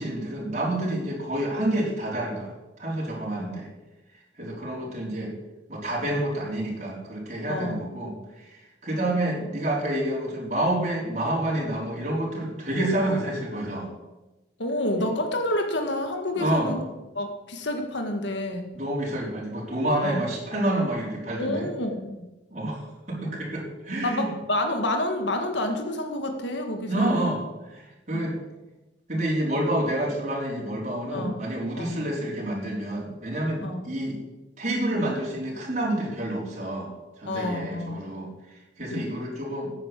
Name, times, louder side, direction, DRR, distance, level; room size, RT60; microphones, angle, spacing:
voice 1, 0.0-2.5 2.8-3.7 4.4-5.3 5.7-13.9 15.0-15.1 16.4-16.7 18.7-21.7 22.5-24.3 26.9-28.4 29.1-34.2 34.6-36.9 37.2-38.3 38.8-39.7, right 1 dB, 40° right, -3 dB, 4.3 m, -28 dB
voice 2, 7.5-7.9 14.6-16.8 17.1-18.7 20.0-20.2 21.4-22.3 24.0-27.3 28.1-28.3 31.1-31.4 31.8-32.0 33.6-33.8 37.3-38.0 38.9-39.1, left 1 dB, 70° left, 4 dB, 1.8 m, -29 dB
11.0 x 9.4 x 8.4 m, 1.0 s
head